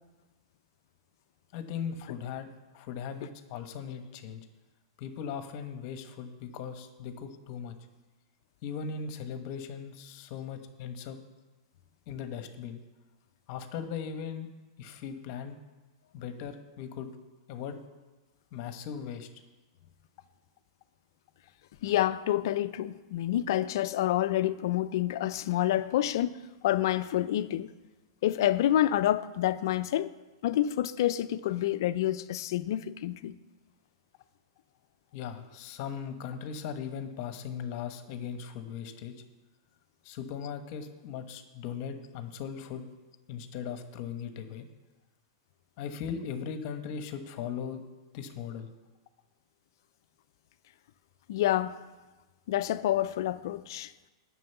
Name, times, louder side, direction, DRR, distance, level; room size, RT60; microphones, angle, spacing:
voice 1, 1.5-2.5 2.7-4.5 5.0-7.7 8.6-11.2 12.1-12.8 13.5-14.5 14.8-15.6 16.1-17.1 17.5-17.8 18.5-19.3 35.1-39.1 40.0-42.8 43.3-44.7 45.8-47.8 48.1-48.7, left 7 dB, 50° left, 1.2 m, -38 dB
voice 2, 21.8-26.4 26.6-27.7 28.2-30.1 30.4-33.4 51.3-51.8 52.5-53.9, left 13 dB, 65° left, 0.6 m, -28 dB
9.2 x 6.3 x 8.0 m
hypercardioid pair, 130°, 2 cm